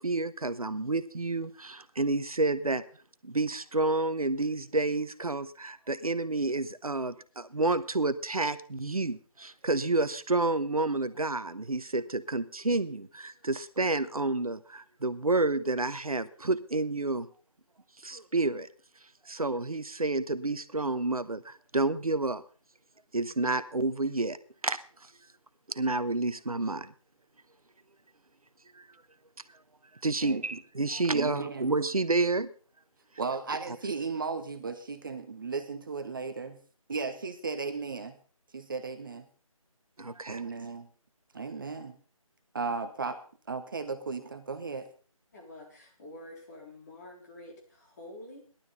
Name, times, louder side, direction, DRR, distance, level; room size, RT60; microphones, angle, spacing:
voice 1, 0.0-2.8 3.2-17.3 18.0-18.7 19.3-22.4 23.1-24.4 24.6-24.8 25.7-26.9 28.8-28.9 30.0-32.5 40.0-40.4, right 2 dB, 85° right, 13 dB, 1.1 m, -29 dB
voice 2, 31.1-31.7 33.2-36.6 36.9-38.2 38.5-39.3 40.3-40.9 41.3-42.0 42.5-43.2 43.5-44.9, right 4 dB, 35° right, 8 dB, 1.1 m, -35 dB
voice 3, 45.3-48.4, left 1 dB, 30° left, 0 dB, 4.1 m, -48 dB
17.5 x 12.0 x 4.1 m, 0.41 s
figure-of-eight pair, 160°, 18 cm